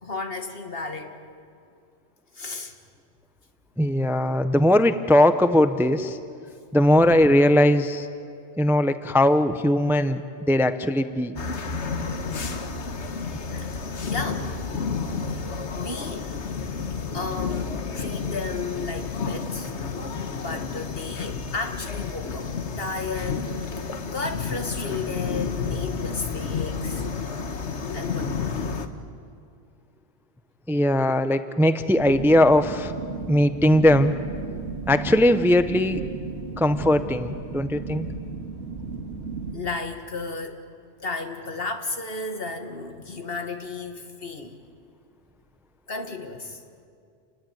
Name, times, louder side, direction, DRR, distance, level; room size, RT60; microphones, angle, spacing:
voice 1, 0.0-1.2 2.3-2.7 13.5-14.5 15.3-16.3 17.1-19.7 20.4-23.7 24.1-27.1 27.9-28.6 39.5-40.7 41.0-44.6 45.9-46.6, left 3 dB, 60° left, 5 dB, 2.1 m, -33 dB
voice 2, 3.8-6.2 6.7-8.1 8.6-11.4 30.7-32.9 33.3-34.1 34.9-36.0 36.6-38.1, left 1 dB, ahead, 10 dB, 0.7 m, -19 dB
sound 1, 11.4-28.9, left 5 dB, 85° left, 1.6 m, -31 dB
sound 2, 31.9-39.6, right 4 dB, 85° right, 2.3 m, -34 dB
29.0 x 20.0 x 9.3 m, 2.3 s
omnidirectional pair, 1.1 m